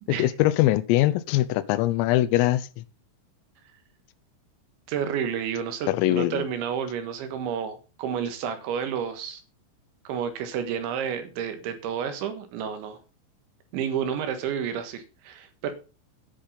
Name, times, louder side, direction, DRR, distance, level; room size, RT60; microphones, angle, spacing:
voice 1, 0.1-2.6 5.9-6.4, left 15 dB, 85° left, 3.5 m, -22 dB
voice 2, 4.9-9.4 10.1-13.0 13.7-15.7, right 8 dB, 70° right, 3.6 m, -30 dB
10.5 x 8.6 x 5.7 m
omnidirectional pair, 6.0 m